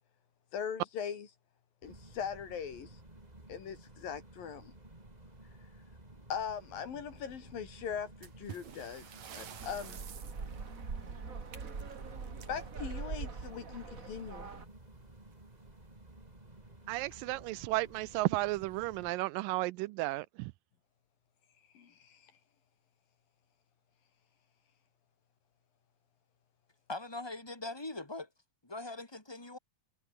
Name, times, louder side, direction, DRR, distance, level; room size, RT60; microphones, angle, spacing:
voice 1, 0.5-1.3 1.8-2.9 3.5-4.7 6.3-9.1 9.3-10.0 12.5-14.5 21.7-22.2, left 7 dB, 75° left, 4.8 m, -40 dB
sound 1, 1.8-19.1, right 1 dB, 10° right, 3.7 m, -54 dB
sound 2, 8.2-13.6 14.9-15.0 15.3-15.4 16.1-16.2 16.8-17.1, right 8 dB, 55° right, 3.3 m, -51 dB
sound 3, 9.6-14.6, right 5 dB, 30° right, 1.9 m, -42 dB
voice 2, 16.9-20.5, right 19 dB, 80° right, 2.2 m, -33 dB
voice 3, 26.9-28.3 28.6-29.6, left 2 dB, 5° left, 3.1 m, -41 dB
omnidirectional pair, 4.0 m